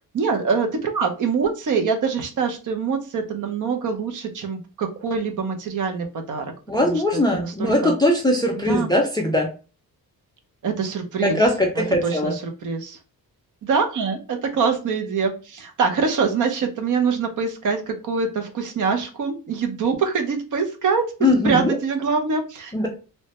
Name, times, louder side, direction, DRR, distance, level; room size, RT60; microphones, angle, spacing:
voice 1, 0.0-6.5 6.8-7.9 8.7-8.9 10.6-11.4 12.0-13.0 13.6-21.0 21.4-22.9, right 5 dB, 55° right, 4 dB, 0.6 m, -24 dB
voice 2, 6.7-9.5 11.2-12.3 21.2-21.8 22.7-22.9, left 1 dB, 10° left, 1 dB, 0.3 m, -20 dB
3.2 x 2.1 x 2.8 m, 0.34 s
wide cardioid pair, 175°, 37 cm